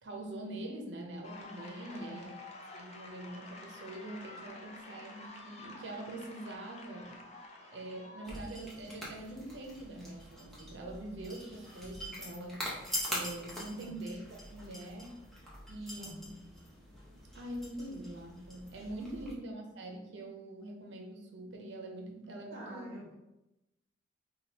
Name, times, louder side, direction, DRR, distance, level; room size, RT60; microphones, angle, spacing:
voice 1, 0.0-2.3 2.7-7.3 7.6-15.2 15.7-16.3 17.3-22.9, right 1 dB, 65° right, 1 dB, 0.7 m, -44 dB
sound 1, 1.2-8.5, left 2 dB, 35° left, 0.5 m, -50 dB
voice 2, 1.9-2.4 13.8-14.0 16.0-16.4 19.0-19.4 22.5-23.1, right 1 dB, 45° right, -9 dB, 1.3 m, -49 dB
sound 2, 8.2-19.3, equal, ahead, 0.8 m, -44 dB
5.0 x 2.3 x 2.8 m, 0.94 s
head